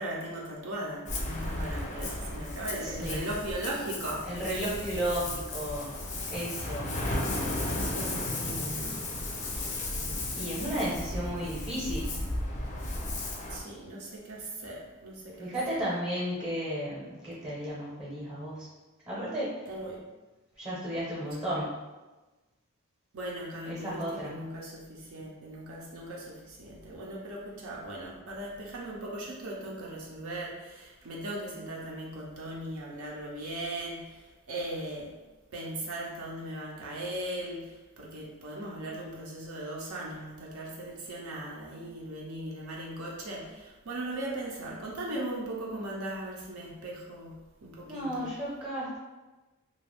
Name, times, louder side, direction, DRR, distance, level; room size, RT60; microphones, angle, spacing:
voice 1, 0.0-4.4 7.8-8.2 13.5-15.5 19.7-20.0 23.1-35.1 35.5-47.3 47.6-48.3, right 1 dB, 70° right, -3 dB, 0.6 m, -38 dB
Ocean, 1.1-13.6, left 2 dB, 35° left, 0.5 m, -34 dB
voice 2, 2.8-3.2 4.2-6.0 6.3-6.9 8.4-9.0 10.0-12.2 15.4-18.7 19.1-19.6 20.6-21.7 23.6-24.3 47.9-49.0, equal, 20° right, -8 dB, 0.8 m, -34 dB
2.5 x 2.3 x 3.3 m, 1.1 s
head